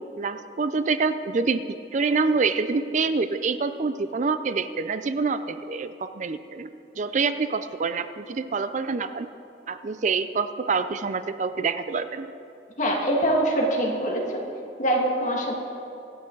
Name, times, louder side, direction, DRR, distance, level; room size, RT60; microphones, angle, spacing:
voice 1, 0.0-1.6 1.9-9.3 9.7-12.3, right 4 dB, 45° right, 11 dB, 0.4 m, -26 dB
voice 2, 12.8-14.4 14.8-15.6, right 1 dB, 45° left, -1 dB, 2.0 m, -24 dB
24.0 x 8.7 x 3.9 m, 2.7 s
head